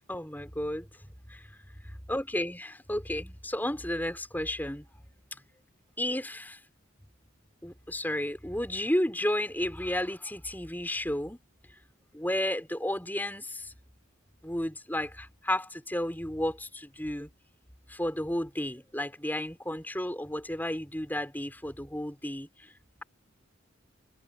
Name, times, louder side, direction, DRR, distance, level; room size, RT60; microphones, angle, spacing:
voice 1, 0.1-0.9 1.3-1.4 2.1-4.8 6.0-6.6 7.6-11.4 12.1-13.7 14.4-17.3 17.9-22.5, left 1 dB, 10° left, 4.9 m, -32 dB
head